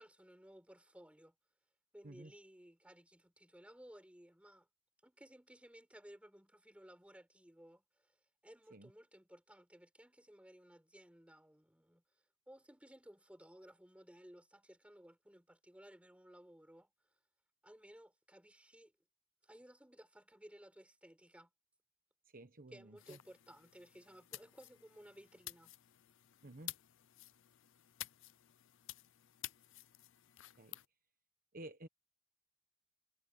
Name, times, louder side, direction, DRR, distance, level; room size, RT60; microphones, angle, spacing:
voice 1, 0.0-1.3 1.9-4.7 5.0-8.2 8.4-12.0 12.5-16.9 17.6-18.9 19.4-21.5 22.7-25.7, equal, 5° right, 4.5 m, -59 dB
voice 2, 22.3-23.2 26.4-26.7 30.6-30.8 31.5-31.9, right 1 dB, 45° right, 1.1 m, -52 dB
sound 1, 23.0-30.9, left 16 dB, 65° left, 0.6 m, -52 dB
head